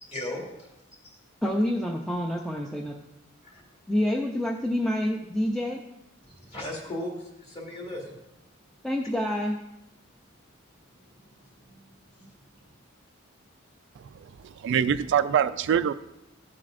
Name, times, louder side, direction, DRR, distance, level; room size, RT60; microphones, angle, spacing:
voice 1, 0.0-0.7 1.0-1.2 3.5-3.6 6.5-8.1 12.2-12.3, left 1 dB, 30° left, 2.4 m, -36 dB
voice 2, 1.4-2.9 3.9-5.8 8.8-9.6, left 1 dB, ahead, 0.5 m, -27 dB
voice 3, 14.6-15.9, right 8 dB, 60° right, 0.3 m, -23 dB
15.0 x 7.4 x 2.5 m
head